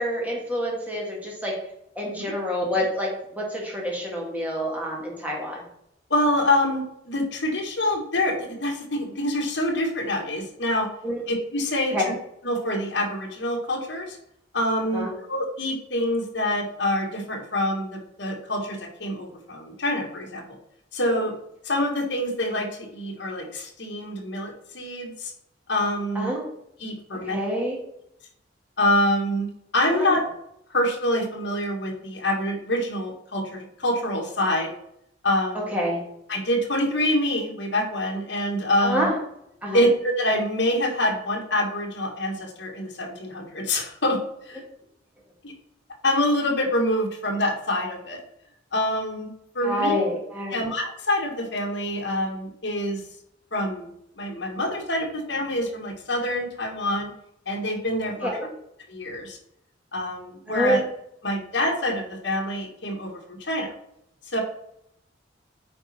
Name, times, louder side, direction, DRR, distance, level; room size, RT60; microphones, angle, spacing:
voice 1, 0.0-1.6 2.0-5.6 11.0-11.2 11.9-12.1 14.9-15.1 26.2-26.4 27.3-27.8 29.9-30.1 35.5-36.0 38.8-39.2 39.6-39.8 49.6-50.6 58.2-58.3 60.5-60.8, equal, 10° right, -3 dB, 2.0 m, -27 dB
voice 2, 6.1-10.9 11.3-12.1 12.4-14.2 14.5-20.4 20.9-21.3 21.6-25.3 25.7-26.3 26.8-27.4 28.8-29.5 29.7-30.2 30.7-34.7 35.2-35.7 36.3-39.1 39.7-44.2 44.4-44.6 45.4-45.5 46.0-48.2 48.7-50.0 50.5-53.0 53.5-57.1 57.4-58.4 58.9-59.4 59.9-60.8 61.2-63.7 64.2-64.4, left 1 dB, 70° left, 1 dB, 1.7 m, -26 dB
8.7 x 4.3 x 4.3 m, 0.76 s
head